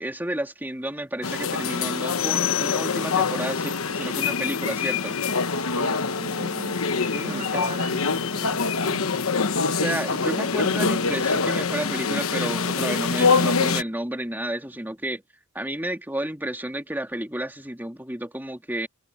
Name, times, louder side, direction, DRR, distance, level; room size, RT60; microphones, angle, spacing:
voice 1, 0.0-5.2 7.1-7.6 9.7-15.2 15.5-18.9, right 1 dB, 10° right, 2.8 m, -31 dB
sound 1, 1.2-13.8, left 5 dB, 75° left, 1.1 m, -24 dB
voice 2, 5.8-6.9 7.2-9.2, right 2 dB, 40° right, 2.0 m, -38 dB
head